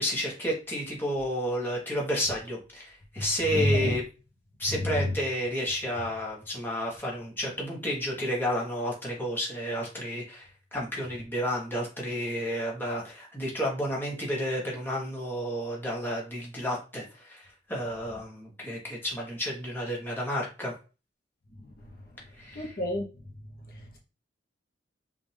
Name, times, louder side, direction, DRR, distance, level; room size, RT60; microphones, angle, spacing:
voice 1, 0.0-4.0 4.6-20.7 22.4-22.7, equal, 10° left, 1.1 m, -31 dB
voice 2, 3.2-4.0 4.7-5.1 21.6-21.9 22.5-23.1 23.7-24.0, left 1 dB, 50° left, 0.8 m, -30 dB
5.2 x 2.5 x 3.3 m
head